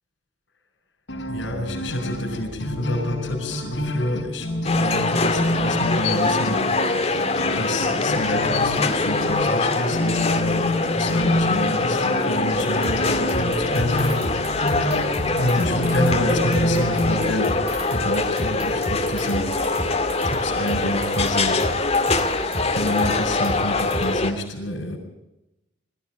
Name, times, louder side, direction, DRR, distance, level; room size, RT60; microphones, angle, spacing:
sound 1, 1.1-17.2, left 1 dB, 70° left, 5.1 m, -28 dB
voice 1, 1.3-4.5 5.1-6.6 7.5-10.6 10.9-14.1 15.4-17.5 17.9-19.5 20.2-21.5 22.7-25.0, left 1 dB, 85° left, -3 dB, 5.1 m, -28 dB
sound 2, 4.6-24.3, left 3 dB, 35° left, 2.0 m, -24 dB
sound 3, 12.5-24.2, equal, 35° right, 5.2 m, -33 dB
21.5 x 14.0 x 8.9 m, 0.92 s
head